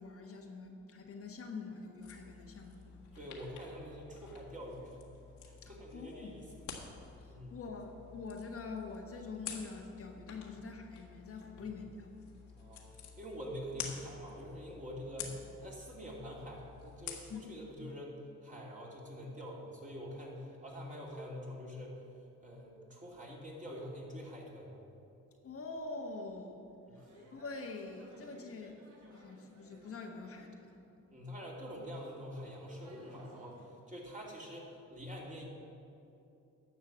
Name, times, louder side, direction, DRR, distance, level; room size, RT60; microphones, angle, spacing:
voice 1, 0.0-3.0 5.6-6.3 7.2-12.1 17.3-17.4 25.4-26.7 27.3-28.8 29.1-30.8, left 4 dB, 50° left, 2 dB, 1.2 m, -45 dB
sound 1, 2.0-17.4, left 6 dB, 75° left, 1.6 m, -50 dB
voice 2, 3.1-5.0 5.4-6.5 7.3-7.6 12.5-22.0 22.4-24.8 26.9-27.1 31.1-35.4, equal, 25° right, -3 dB, 2.6 m, -46 dB
sound 2, 26.9-30.9 31.3-33.6, right 1 dB, 75° right, 2.9 m, -60 dB
10.5 x 6.4 x 7.3 m, 2.7 s
cardioid pair, 90°, 30 cm